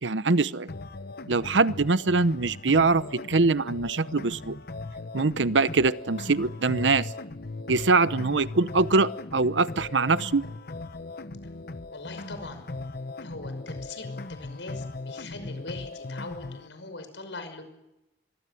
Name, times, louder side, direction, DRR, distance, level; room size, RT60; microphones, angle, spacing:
voice 1, 0.0-0.7 1.3-4.6 5.1-7.1 7.7-10.4, right 3 dB, 85° right, 16 dB, 0.8 m, -23 dB
sound 1, 0.7-16.7, left 2 dB, 55° left, 1.0 m, -38 dB
voice 2, 11.9-12.6 13.2-17.6, left 3 dB, 85° left, 8 dB, 5.8 m, -41 dB
24.5 x 24.0 x 7.8 m, 0.94 s
head